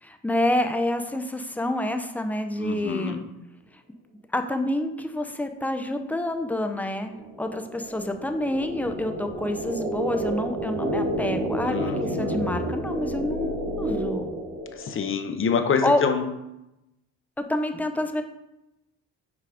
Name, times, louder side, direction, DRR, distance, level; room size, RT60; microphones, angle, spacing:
voice 1, 0.0-3.2 4.3-14.3 15.8-16.0 17.4-18.2, left 1 dB, 5° left, 6 dB, 0.6 m, -28 dB
voice 2, 2.6-3.2 11.6-12.5 14.7-16.2, left 6 dB, 35° left, 7 dB, 0.8 m, -26 dB
sound 1, 6.3-15.1, right 1 dB, 70° right, 2.2 m, -30 dB
6.0 x 4.6 x 4.9 m, 0.92 s
cardioid pair, 110°, 35 cm